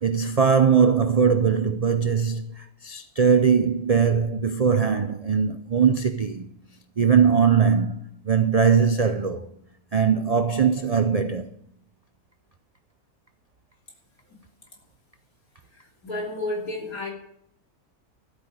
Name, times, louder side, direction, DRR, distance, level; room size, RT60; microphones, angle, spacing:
voice 1, 0.0-6.5 7.0-9.5 9.9-11.5, right 6 dB, 65° right, 0.3 m, -21 dB
voice 2, 16.0-17.1, left 2 dB, 80° left, 3.5 m, -30 dB
13.0 x 8.4 x 6.3 m
omnidirectional pair, 1.5 m